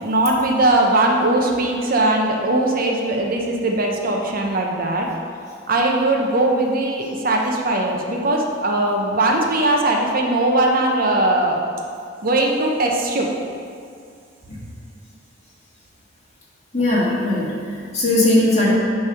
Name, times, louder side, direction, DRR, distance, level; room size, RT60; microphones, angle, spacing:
voice 1, 0.0-5.1 5.7-11.6 12.2-13.3, right 2 dB, 50° right, 0 dB, 0.8 m, -19 dB
voice 2, 16.7-18.7, left 1 dB, 35° left, -6 dB, 1.9 m, -19 dB
9.6 x 3.4 x 5.7 m, 2.4 s
head